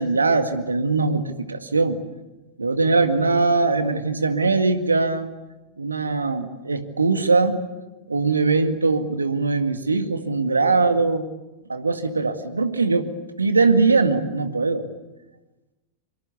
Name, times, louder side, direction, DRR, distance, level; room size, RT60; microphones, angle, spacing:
voice 1, 0.0-2.0 2.6-5.3 5.8-7.7 8.1-11.3 11.7-13.1 13.4-14.9, right 3 dB, 80° right, 8 dB, 1.9 m, -21 dB
26.0 x 24.5 x 8.3 m, 1.1 s
figure-of-eight pair, 90°, 0 cm